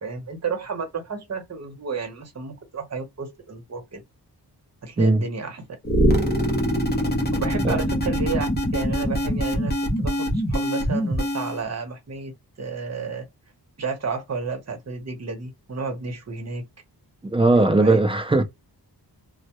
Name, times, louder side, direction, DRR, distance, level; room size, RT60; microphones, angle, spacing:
voice 1, 0.0-4.0 4.8-5.6 7.3-9.7 10.0-12.3 12.6-13.3 13.8-16.6 17.5-18.0, right 4 dB, 40° right, 0.8 m, -31 dB
sound 1, 5.8-11.6, equal, 25° left, 0.7 m, -23 dB
voice 2, 17.2-18.4, right 2 dB, 15° right, 0.3 m, -18 dB
2.2 x 2.0 x 2.8 m
wide cardioid pair, 135°, 39 cm